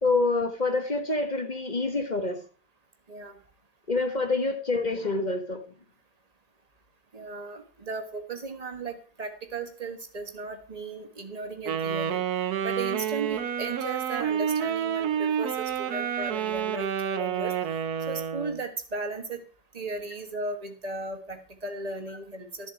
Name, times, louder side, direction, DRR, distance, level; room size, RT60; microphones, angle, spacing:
voice 1, 0.0-2.4 3.9-5.6, left 3 dB, 25° left, 6 dB, 1.2 m, -26 dB
voice 2, 7.1-12.2 12.6-17.5 18.1-19.4 19.7-22.7, right 3 dB, 20° right, 5 dB, 1.4 m, -36 dB
Wind instrument woodwind instrument, 11.7-18.6, right 8 dB, 60° right, 1.2 m, -29 dB
13.0 x 7.4 x 4.7 m, 0.39 s
omnidirectional pair, 2.0 m